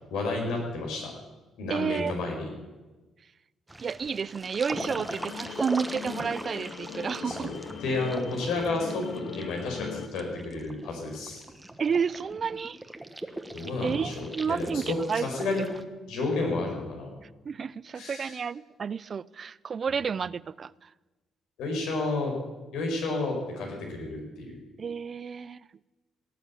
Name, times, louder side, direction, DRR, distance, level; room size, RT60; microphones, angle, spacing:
voice 1, 0.1-1.1 1.6-2.5 7.2-7.5 7.8-11.4 13.5-15.6 16.1-17.1 17.9-18.4 21.6-22.3 22.7-24.5, left 3 dB, 90° left, 4.9 m, -31 dB
voice 2, 1.7-2.1 3.8-7.5 11.8-12.8 13.8-15.3 17.5-20.9 24.8-25.7, right 6 dB, 45° right, 0.4 m, -31 dB
sound 1, 3.7-15.8, right 1 dB, 10° right, 1.2 m, -41 dB
sound 2, 4.7-10.1, left 8 dB, 70° left, 0.8 m, -40 dB
17.5 x 8.3 x 8.6 m
cardioid pair, 90°, 0 cm